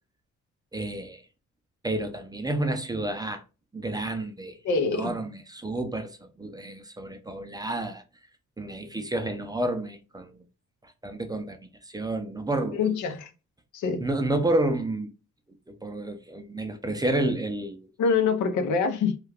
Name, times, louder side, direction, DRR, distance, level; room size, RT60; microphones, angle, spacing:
voice 1, 0.7-1.2 1.8-3.4 3.7-8.0 8.6-10.4 10.8-11.6 11.9-12.8 14.0-15.1 15.7-17.9, right 1 dB, 15° right, 0.5 m, -30 dB
voice 2, 4.6-5.1 12.8-13.3 13.7-14.0 18.0-19.2, left 5 dB, 75° left, 0.7 m, -25 dB
2.4 x 2.2 x 3.3 m
cardioid pair, 90°, 30 cm